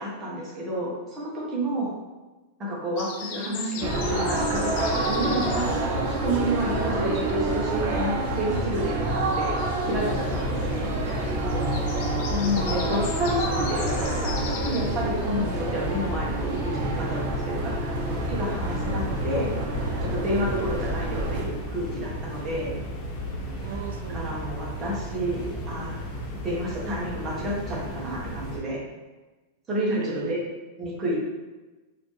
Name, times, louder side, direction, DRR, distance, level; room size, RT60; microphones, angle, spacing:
voice 1, 0.0-1.9 2.6-9.5 9.8-10.9 12.3-19.5 20.0-22.8 24.1-26.0 26.4-28.8 29.7-30.4 30.8-31.2, equal, 15° right, -6 dB, 1.1 m, -30 dB
sound 1, 3.0-7.3 7.6-15.0, left 6 dB, 45° left, 0.4 m, -40 dB
sound 2, 3.8-21.4, right 2 dB, 50° right, 0.7 m, -28 dB
sound 3, 9.9-28.6, equal, 30° left, 0.7 m, -35 dB
voice 2, 11.4-12.7 23.6-24.3 30.0-30.4, right 3 dB, 90° right, 6 dB, 0.4 m, -35 dB
4.2 x 2.7 x 3.2 m, 1.2 s
supercardioid pair, 165°, 0 cm